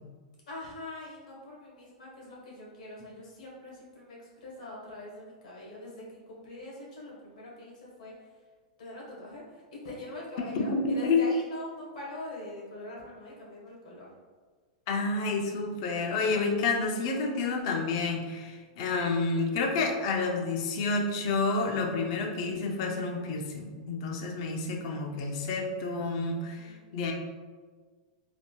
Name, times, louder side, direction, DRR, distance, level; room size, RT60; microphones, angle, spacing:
voice 1, 0.5-8.3 8.8-14.1 26.6-26.8, left 1 dB, 80° left, -4 dB, 1.2 m, -43 dB
voice 2, 10.4-11.2 14.9-27.1, left 3 dB, 45° left, 2 dB, 0.4 m, -29 dB
3.4 x 2.6 x 2.2 m, 1.5 s
supercardioid pair, 165°, 4 cm